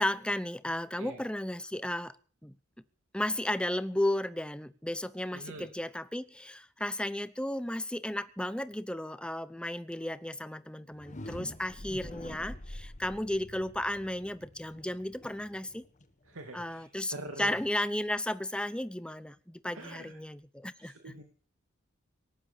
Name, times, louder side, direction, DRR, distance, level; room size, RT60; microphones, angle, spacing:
voice 1, 0.0-2.2 2.4-2.6 3.1-15.8 16.5-21.1, left 1 dB, 5° left, 0.7 m, -34 dB
voice 2, 5.3-5.7 16.3-17.5 19.7-20.2 20.8-21.2, right 1 dB, 80° right, 2.5 m, -44 dB
sound 1, 10.8-16.7, left 1 dB, 35° left, 1.5 m, -46 dB
18.0 x 11.0 x 7.0 m
head